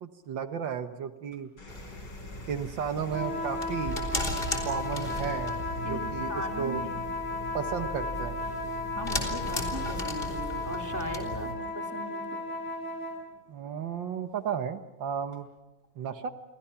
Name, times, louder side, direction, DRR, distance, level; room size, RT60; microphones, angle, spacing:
voice 1, 0.0-1.5 2.5-4.0 4.7-6.3 6.6-6.8 7.5-8.4 13.5-15.5 16.0-16.3, right 7 dB, 75° right, 9 dB, 1.9 m, -34 dB
sound 1, 1.3-13.9 15.2-15.6, left 2 dB, 85° left, 5.0 m, -50 dB
sound 2, 1.7-11.5, left 1 dB, 25° left, 3.8 m, -37 dB
sound 3, 3.0-13.2, left 3 dB, 50° left, 8.4 m, -35 dB
voice 2, 6.3-7.1 9.0-11.5 11.7-12.4, right 1 dB, 10° right, 3 dB, 2.9 m, -38 dB
29.5 x 23.5 x 5.9 m, 1.1 s
omnidirectional pair, 2.1 m